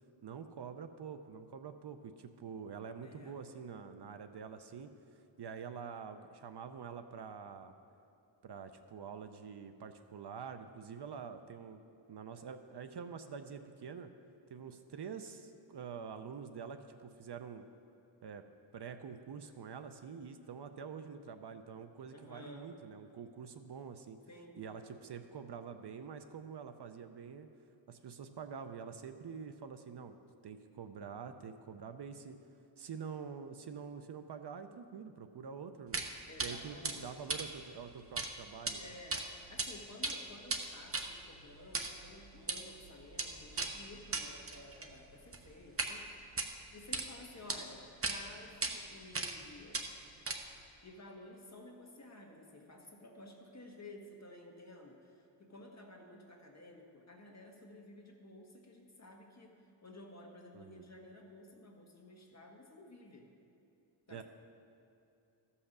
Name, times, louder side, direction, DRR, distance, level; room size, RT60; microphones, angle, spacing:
voice 1, 0.2-4.9 5.4-7.7 8.4-14.1 14.5-17.7 18.2-18.4 18.7-24.2 24.6-27.5 27.9-30.2 30.4-32.4 32.8-36.1 36.4-38.9 60.5-60.9 64.1-64.2, right 6 dB, 60° right, 9 dB, 0.6 m, -46 dB
voice 2, 3.0-3.4 22.1-22.7 24.3-24.8 36.3-37.1 38.7-39.2 39.5-46.2 46.7-49.8 50.8-59.5 59.8-63.3 64.1-64.2, left 2 dB, 35° left, 0 dB, 1.6 m, -53 dB
sound 1, 35.9-36.1 36.4-36.5 36.8-38.3 38.6-38.7 39.1-39.7 39.9-45.9 46.3-47.1 47.5-47.6 48.0-48.2 48.6-48.7 49.1-49.4 49.7-50.7, right 3 dB, 30° right, 0.8 m, -38 dB
14.0 x 5.7 x 6.7 m, 2.7 s
wide cardioid pair, 115°, 46 cm